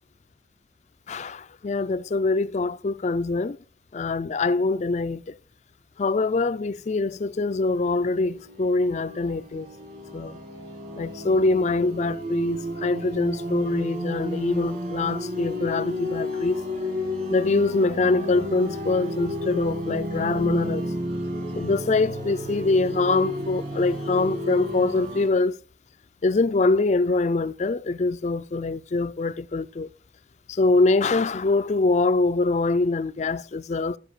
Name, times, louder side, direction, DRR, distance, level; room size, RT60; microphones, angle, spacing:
voice 1, 1.1-3.6 3.9-5.4 6.0-9.7 10.1-10.4 11.0-16.6 17.3-20.9 21.5-25.6 26.2-29.9 30.5-34.0, left 3 dB, 40° left, 0.4 m, -24 dB
sound 1, 7.2-25.3, left 1 dB, 50° right, 2.5 m, -32 dB
14.0 x 5.8 x 4.9 m
head